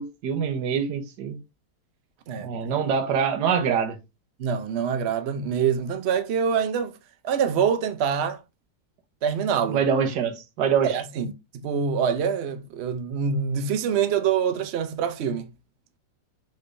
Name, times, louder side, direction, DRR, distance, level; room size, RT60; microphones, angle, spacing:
voice 1, 0.0-1.4 2.4-4.0 9.7-11.0, right 7 dB, 70° right, 1.5 m, -25 dB
voice 2, 4.4-6.9 7.2-8.4 9.2-9.8 10.9-11.3 11.6-15.5, right 7 dB, 90° right, 0.5 m, -25 dB
6.0 x 3.2 x 2.6 m
omnidirectional pair, 2.0 m